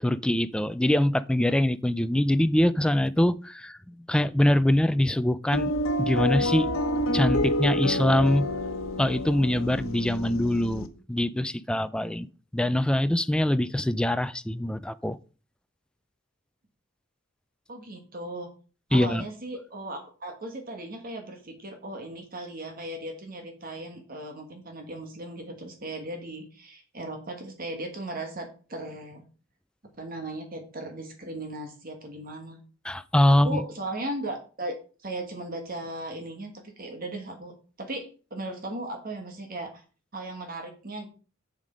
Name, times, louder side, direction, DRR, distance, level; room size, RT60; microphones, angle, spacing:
voice 1, 0.0-5.7 6.0-6.7 7.1-8.5 9.0-12.3 12.5-15.2 18.9-19.2 32.8-33.6, left 1 dB, 5° left, 0.3 m, -24 dB
sound 1, 5.5-10.9, left 1 dB, 85° left, 1.0 m, -28 dB
voice 2, 17.7-18.5 18.9-29.2 30.0-32.6 33.4-39.8 40.1-41.1, right 1 dB, 45° right, 1.6 m, -37 dB
7.2 x 6.7 x 5.1 m
head